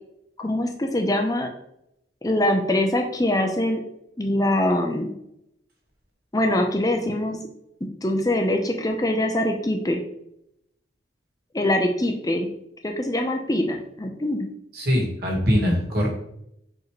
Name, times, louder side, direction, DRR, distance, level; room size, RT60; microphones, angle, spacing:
voice 1, 0.4-1.5 2.2-3.8 4.2-5.1 6.3-7.4 8.0-10.0 11.5-12.5 12.8-14.5, left 1 dB, 20° left, 3 dB, 0.7 m, -23 dB
voice 2, 14.7-16.1, equal, 55° right, -2 dB, 2.0 m, -22 dB
4.9 x 4.8 x 4.9 m, 0.77 s
head